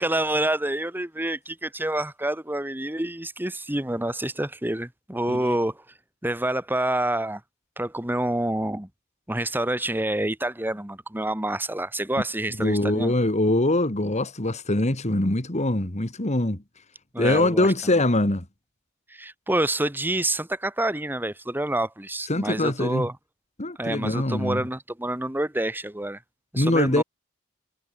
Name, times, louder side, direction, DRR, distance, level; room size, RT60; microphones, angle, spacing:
voice 1, 0.0-5.8 6.2-7.4 7.8-8.9 9.3-13.1 17.1-17.7 19.1-23.1 23.8-26.2 26.5-27.0, right 1 dB, 10° right, 1.7 m, -27 dB
voice 2, 12.6-16.6 17.2-18.5 22.3-23.1 23.6-24.6 26.6-27.0, left 1 dB, 35° left, 2.2 m, -23 dB
head